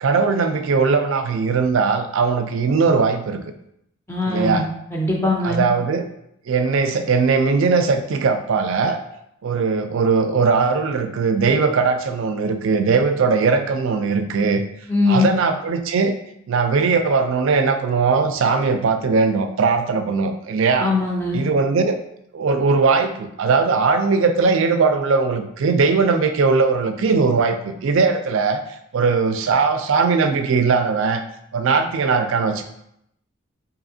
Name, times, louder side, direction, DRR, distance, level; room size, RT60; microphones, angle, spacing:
voice 1, 0.0-3.4 4.3-4.6 5.4-6.0 6.5-9.0 9.4-14.6 15.1-16.2 16.5-20.9 21.3-22.0 22.3-28.6 28.9-31.2 31.5-32.6, right 4 dB, 65° right, 7 dB, 0.4 m, -19 dB
voice 2, 4.1-4.6 4.9-5.6 14.9-15.4 20.8-21.4, left 3 dB, 10° left, -2 dB, 0.4 m, -20 dB
4.8 x 2.7 x 2.7 m, 0.77 s
head